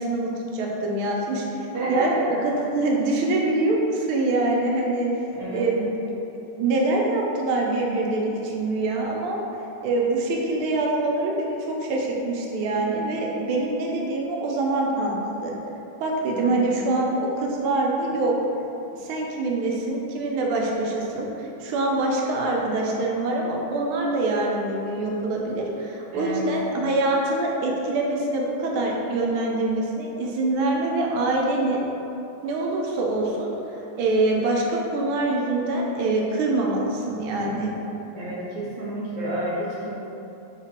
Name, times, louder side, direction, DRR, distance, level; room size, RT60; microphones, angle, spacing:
voice 1, 0.0-5.1 5.5-6.2 6.6-9.4 9.8-15.5 16.0-18.3 19.0-31.8 32.4-33.5 34.0-37.7, right 2 dB, 90° right, -1 dB, 1.5 m, -25 dB
voice 2, 1.7-2.4 5.3-5.7 16.3-16.7 26.1-26.5 38.1-40.0, right 1 dB, 65° right, -7 dB, 1.3 m, -30 dB
3.5 x 3.0 x 4.2 m, 3.0 s
omnidirectional pair, 2.2 m